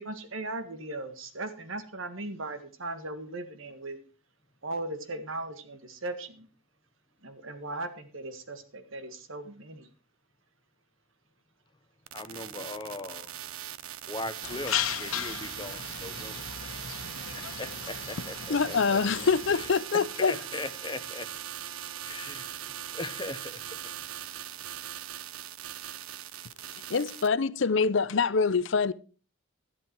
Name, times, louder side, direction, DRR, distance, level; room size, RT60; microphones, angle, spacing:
voice 1, 0.0-4.0 4.6-6.5 7.2-9.9, right 2 dB, 70° right, 1.7 m, -38 dB
voice 2, 12.1-13.3 14.1-16.4 17.3-19.0 20.2-21.3 22.0-23.7, left 2 dB, 20° left, 1.0 m, -39 dB
sound 1, 12.1-27.3, right 11 dB, 85° right, 0.7 m, -40 dB
sound 2, 14.4-19.7, left 9 dB, 85° left, 1.3 m, -36 dB
voice 3, 18.5-20.4 26.7-28.9, left 5 dB, 60° left, 0.6 m, -25 dB
12.0 x 11.5 x 4.6 m
head